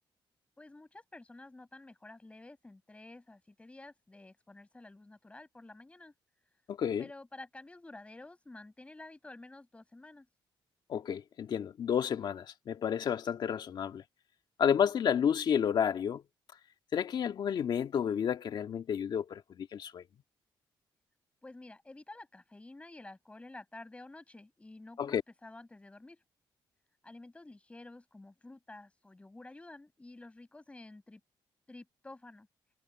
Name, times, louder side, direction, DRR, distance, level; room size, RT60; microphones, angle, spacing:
voice 1, 0.6-6.1 7.0-10.3 21.4-26.2 27.0-31.2 31.7-32.5, left 2 dB, 15° left, 7.4 m, -51 dB
voice 2, 6.7-7.1 10.9-14.0 14.6-16.2 16.9-20.0 25.0-25.2, left 8 dB, 55° left, 1.8 m, -31 dB
cardioid pair, 135°, 9 cm